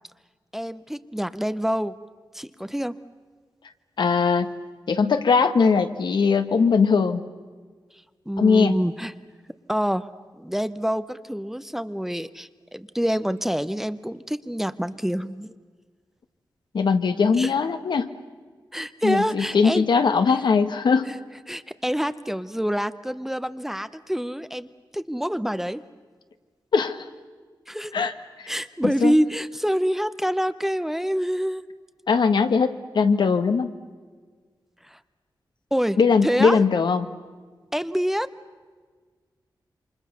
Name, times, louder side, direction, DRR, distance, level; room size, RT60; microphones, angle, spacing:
voice 1, 0.5-2.0 2.3-3.0 8.3-9.1 9.7-10.1 10.4-15.5 17.4-17.5 18.7-19.9 21.5-24.7 24.9-25.8 27.7-27.9 28.5-31.6 34.8-35.0 35.7-36.6 37.7-38.3, equal, 5° right, 13 dB, 0.7 m, -26 dB
voice 2, 4.0-4.5 4.9-7.2 8.4-8.7 16.7-18.1 19.0-21.1 26.7-27.0 27.9-28.1 28.8-29.1 32.1-33.7 36.0-37.1, left 5 dB, 75° left, 8 dB, 1.5 m, -20 dB
28.5 x 26.0 x 6.8 m, 1.5 s
wide cardioid pair, 135°, 8 cm